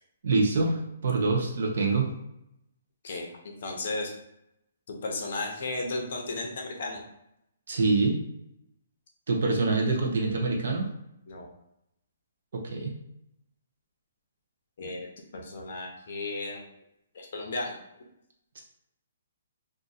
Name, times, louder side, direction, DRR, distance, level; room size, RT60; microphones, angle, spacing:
voice 1, 0.2-2.1 7.7-8.2 9.3-10.9 12.5-13.0 18.6-18.7, right 3 dB, 55° right, 0 dB, 0.7 m, -25 dB
voice 2, 3.0-4.1 4.9-7.0 11.3-11.5 14.8-15.1 15.3-16.6 17.1-17.8, left 2 dB, 45° left, 1 dB, 0.6 m, -34 dB
2.5 x 2.5 x 4.0 m, 0.81 s
hypercardioid pair, 180°, 0 cm